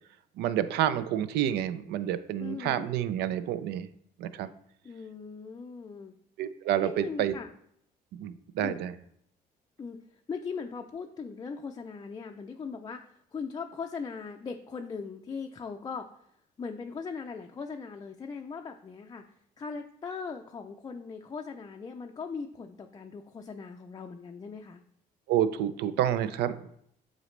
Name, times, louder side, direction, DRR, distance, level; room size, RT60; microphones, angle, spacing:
voice 1, 0.4-3.9 4.2-4.5 6.4-7.3 8.2-8.9 25.3-26.7, right 11 dB, 80° right, 13 dB, 0.5 m, -29 dB
voice 2, 2.4-2.9 4.8-6.1 6.8-7.5 8.6-8.8 9.8-16.1 16.6-19.2 19.6-24.8, left 5 dB, 25° left, 3 dB, 0.4 m, -39 dB
7.8 x 3.9 x 3.2 m, 0.70 s
cardioid pair, 110°, 17 cm